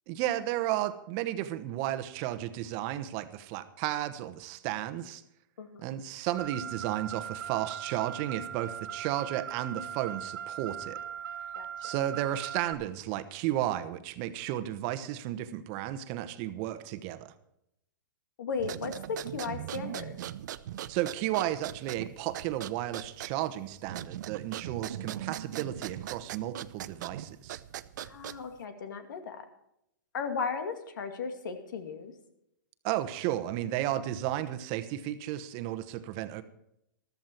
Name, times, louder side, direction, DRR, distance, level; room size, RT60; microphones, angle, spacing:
voice 1, 0.1-5.2 5.8-11.0 11.8-17.3 20.9-27.6 32.8-36.4, right 13 dB, 40° right, 11 dB, 1.1 m, -33 dB
Car, 6.4-12.7, right 8 dB, 85° right, 1.7 m, -39 dB
voice 2, 18.4-20.2 28.0-29.4 30.1-32.1, left 5 dB, 70° left, 8 dB, 2.3 m, -36 dB
sound 1, 18.5-28.6, right 12 dB, 65° right, 0.7 m, -40 dB
14.0 x 13.0 x 4.5 m, 0.79 s
hypercardioid pair, 135°, 11 cm